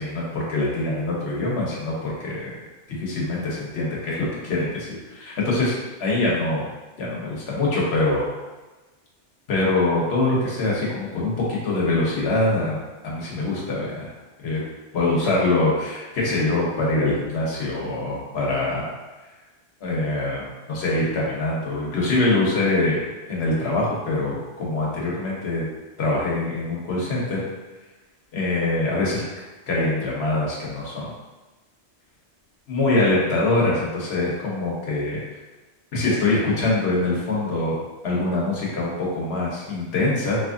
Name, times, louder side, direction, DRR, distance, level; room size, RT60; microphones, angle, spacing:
voice 1, 0.0-2.5 3.0-4.9 5.2-6.6 7.0-8.2 9.5-11.3 11.6-12.8 13.0-14.1 14.4-14.6 14.9-18.9 19.8-23.0 23.3-25.6 26.0-27.4 28.3-29.2 29.7-31.1 32.7-35.2 35.9-37.8 38.0-40.4, left 2 dB, 65° left, -5 dB, 1.1 m, -24 dB
3.5 x 2.9 x 2.5 m, 1.2 s
omnidirectional pair, 1.2 m